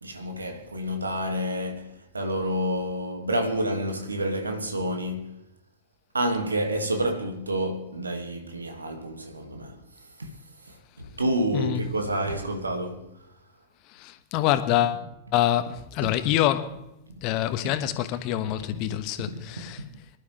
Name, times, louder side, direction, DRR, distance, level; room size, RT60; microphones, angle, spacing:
voice 1, 0.0-5.4 6.1-9.8 10.2-10.3 10.7-13.1 19.3-19.4, right 1 dB, 80° right, 2.2 m, -29 dB
voice 2, 14.0-15.0 15.3-16.8 17.2-19.8, left 12 dB, 40° left, 1.4 m, -26 dB
25.5 x 12.0 x 3.4 m
figure-of-eight pair, 90°, 0 cm